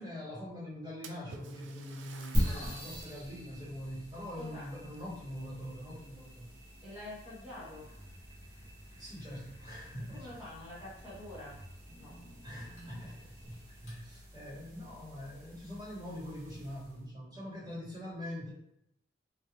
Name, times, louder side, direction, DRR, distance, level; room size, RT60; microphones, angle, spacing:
voice 1, 0.0-6.5 9.0-10.4 12.4-18.5, equal, 20° right, -9 dB, 1.4 m, -43 dB
Splash splatter, 1.0-3.3 3.8-3.9 4.8-5.9 6.2-6.7 7.5-7.6 8.1-8.2 10.3-10.4 10.8-10.9 11.4-11.5 11.9-12.0 12.8-13.3, right 5 dB, 70° right, 0.3 m, -53 dB
sound 1, 2.3-17.1, equal, 45° right, 1.1 m, -42 dB
voice 2, 2.4-2.9 4.3-4.9 6.8-7.9 10.0-11.6 12.0-12.2, left 1 dB, 5° right, -11 dB, 1.2 m, -47 dB
sound 2, 7.7-14.0, equal, 40° left, 1.2 m, -56 dB
3.4 x 2.7 x 2.4 m, 0.78 s
head